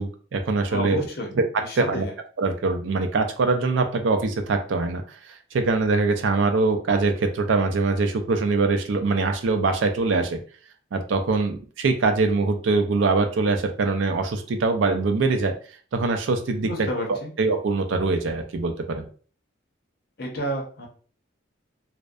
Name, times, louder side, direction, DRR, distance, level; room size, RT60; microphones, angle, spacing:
voice 1, 0.0-1.0 1.3-1.4 1.8-2.1 2.4-10.4 10.9-15.5 15.9-19.1, right 3 dB, 70° right, 6 dB, 0.4 m, -23 dB
voice 2, 0.7-1.3 1.6-2.1 16.6-17.3 20.2-20.9, equal, 50° left, 1 dB, 0.7 m, -30 dB
2.6 x 2.1 x 2.3 m, 0.41 s
head